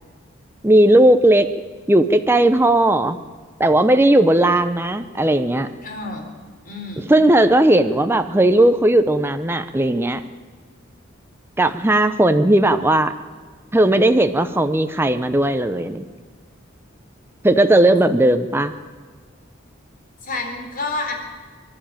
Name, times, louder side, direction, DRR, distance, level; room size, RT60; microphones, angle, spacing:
voice 1, 0.6-1.5 1.9-3.2 3.6-5.7 7.1-10.2 11.6-13.1 13.7-16.0 17.4-18.7, right 1 dB, 10° right, 8 dB, 0.7 m, -16 dB
voice 2, 5.8-6.3 6.6-7.1 20.2-21.1, left 3 dB, 45° left, 2 dB, 3.9 m, -29 dB
25.0 x 12.0 x 8.9 m, 1.5 s
head